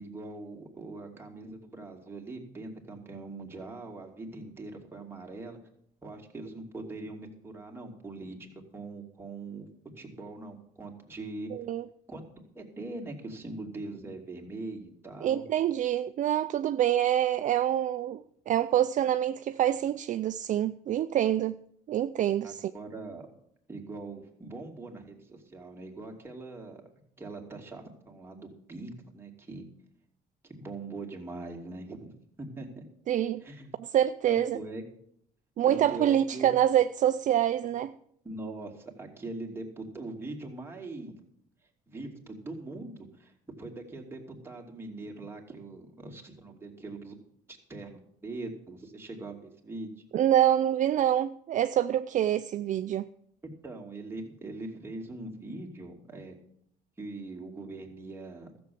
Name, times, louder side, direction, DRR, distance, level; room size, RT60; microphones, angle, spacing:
voice 1, 0.0-5.6 6.0-9.7 10.0-11.5 12.1-12.2 12.5-15.4 22.4-23.3 23.7-26.8 27.2-29.7 30.4-32.8 33.4-33.7 34.3-34.8 35.7-36.5 38.2-41.1 41.9-43.3 43.6-47.2 47.5-49.9 53.4-56.4 57.0-58.5, right 2 dB, 15° right, 2.7 m, -42 dB
voice 2, 11.5-11.8 15.2-21.6 21.9-22.7 33.1-33.4 33.8-34.6 35.6-37.9 50.1-53.1, right 11 dB, 50° right, 0.4 m, -26 dB
13.5 x 7.0 x 7.7 m
cardioid pair, 110°, 17 cm